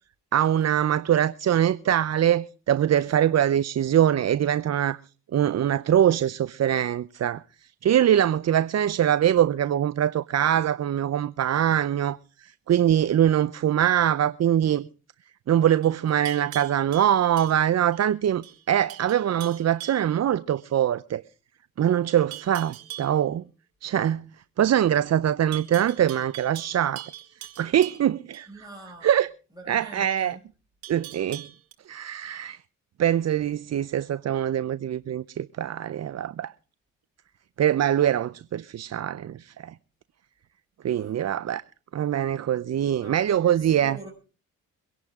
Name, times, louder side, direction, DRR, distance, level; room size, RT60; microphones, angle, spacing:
voice 1, 0.3-5.0 5.3-7.4 7.8-14.9 15.5-21.2 21.8-23.4 23.8-24.2 24.6-27.1 27.6-28.6 29.0-29.3 29.7-30.4 30.9-31.5 31.9-32.6 33.0-36.5 37.6-39.7 40.8-41.6 41.9-44.0, right 10 dB, 45° right, 0.6 m, -23 dB
Livestock farm animals working animals, 15.8-18.1 18.4-18.6 18.9-20.1 22.3-23.2 25.5-28.5 30.8-31.7, right 14 dB, 85° right, 2.4 m, -42 dB
voice 2, 28.5-29.2 29.5-30.4 40.9-41.2 43.0-44.1, right 1 dB, 10° right, 5.2 m, -44 dB
24.0 x 11.0 x 3.6 m
supercardioid pair, 60°, 37 cm